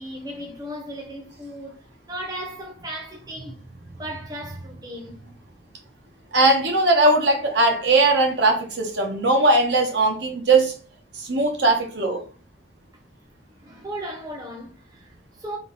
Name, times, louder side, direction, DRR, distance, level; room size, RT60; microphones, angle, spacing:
voice 1, 0.0-1.8 2.1-5.3 13.5-15.6, right 1 dB, 20° right, 0.8 m, -36 dB
voice 2, 6.3-10.7 11.1-12.2, right 2 dB, 60° right, 0.8 m, -19 dB
3.5 x 2.3 x 3.9 m
head